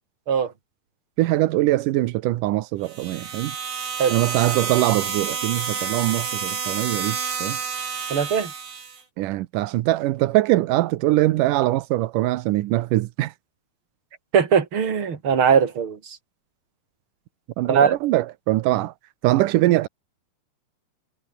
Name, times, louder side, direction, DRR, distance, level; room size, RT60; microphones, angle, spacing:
voice 1, 1.2-3.6 4.1-7.6 9.2-13.3 17.6-18.9 19.2-19.9, right 16 dB, 90° right, 1.8 m, -22 dB
sound 1, 2.8-9.0, right 6 dB, 75° right, 7.4 m, -29 dB
voice 2, 8.1-8.5 14.3-16.2 17.6-17.9, right 7 dB, 35° right, 3.0 m, -20 dB
omnidirectional pair, 4.8 m